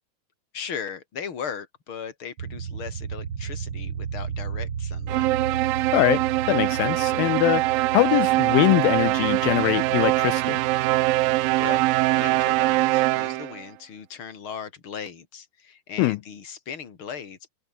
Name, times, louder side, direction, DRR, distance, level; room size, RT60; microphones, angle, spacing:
voice 1, 0.5-5.3 11.5-17.5, left 7 dB, 35° left, 3.2 m, -37 dB
sound 1, 2.4-12.8, right 7 dB, 40° right, 2.1 m, -35 dB
sound 2, 5.1-13.6, right 19 dB, 80° right, 2.2 m, -23 dB
voice 2, 5.9-6.2 6.5-10.6 16.0-16.2, left 19 dB, 80° left, 2.3 m, -22 dB
omnidirectional pair, 4.5 m